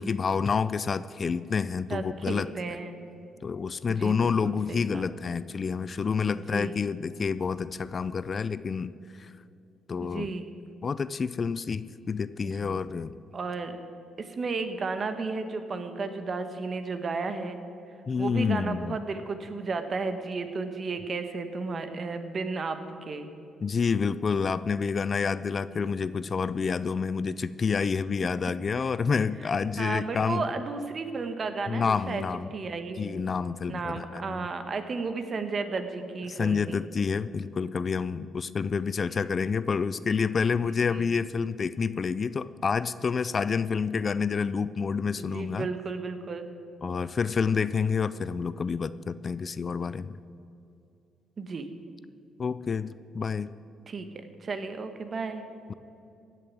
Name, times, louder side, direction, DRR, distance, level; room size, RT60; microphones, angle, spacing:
voice 1, 0.0-2.5 3.4-8.9 9.2-9.3 9.9-10.3 10.8-13.1 18.1-19.0 23.6-30.4 31.7-32.5 33.0-34.5 36.3-45.7 46.8-50.2 52.4-53.5, left 5 dB, 40° left, 16 dB, 0.4 m, -28 dB
voice 2, 1.9-3.0 3.9-5.1 6.3-6.8 10.0-10.5 12.4-12.8 13.3-13.8 14.2-17.6 18.2-23.3 25.7-26.1 29.8-32.2 32.5-33.2 33.7-36.8 39.1-39.2 40.8-41.1 45.2-46.5 51.4-51.7 53.9-55.4, right 4 dB, 45° right, 8 dB, 1.4 m, -33 dB
16.0 x 7.0 x 9.3 m, 2.7 s
cardioid pair, 90°, 0 cm